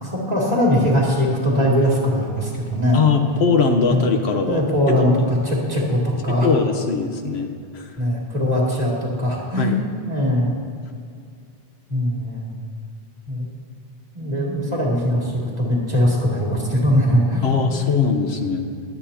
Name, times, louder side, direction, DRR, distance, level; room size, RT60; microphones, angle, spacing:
voice 1, 0.0-3.1 3.9-4.1 4.5-6.5 8.0-10.5 11.9-12.5 13.3-13.5 14.1-17.5, equal, 40° right, -6 dB, 3.0 m, -21 dB
voice 2, 2.9-4.6 6.3-7.9 9.6-9.8 17.4-18.7, left 5 dB, 85° left, 4 dB, 1.3 m, -20 dB
24.0 x 9.2 x 2.9 m, 2.3 s
omnidirectional pair, 1.1 m